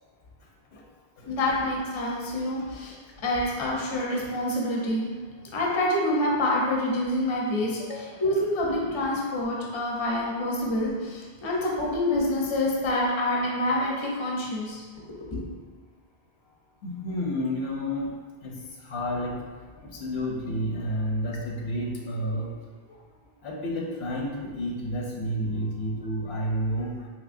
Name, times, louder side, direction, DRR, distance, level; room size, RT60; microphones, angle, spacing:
voice 1, 1.2-3.0 3.2-5.1 5.5-14.8 15.1-15.5, left 1 dB, 35° left, -3 dB, 0.5 m, -27 dB
voice 2, 16.8-18.1 18.4-18.5 18.8-19.4 19.8-22.6 23.4-26.9, equal, 85° left, -1 dB, 0.9 m, -30 dB
3.7 x 2.8 x 2.5 m, 1.5 s
omnidirectional pair, 1.1 m